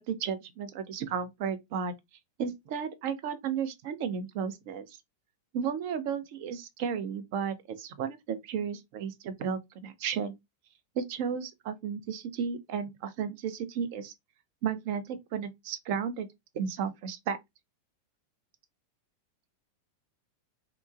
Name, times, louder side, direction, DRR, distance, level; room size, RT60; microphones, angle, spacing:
voice 1, 0.1-1.9 2.4-5.0 5.5-10.3 10.9-14.1 14.6-16.3 16.5-17.4, right 7 dB, 50° right, 0.5 m, -33 dB
2.9 x 2.2 x 2.5 m
figure-of-eight pair, 90°, 0 cm